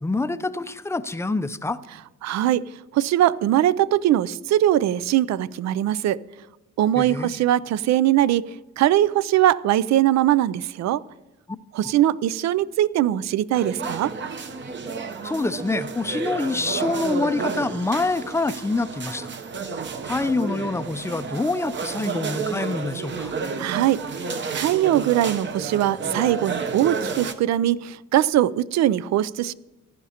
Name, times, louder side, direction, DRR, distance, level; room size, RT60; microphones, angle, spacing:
voice 1, 0.0-1.8 7.0-7.3 15.2-19.3 20.0-23.3, left 3 dB, 10° left, 13 dB, 0.4 m, -26 dB
voice 2, 2.2-2.6 2.9-6.2 6.8-8.5 8.8-11.0 11.7-14.1 23.6-24.0 24.5-29.5, right 12 dB, 65° right, 20 dB, 0.4 m, -21 dB
sound 1, 13.5-27.3, right 5 dB, 40° right, 0.8 m, -31 dB
15.0 x 11.0 x 2.9 m, 1.0 s
cardioid pair, 90°, 30 cm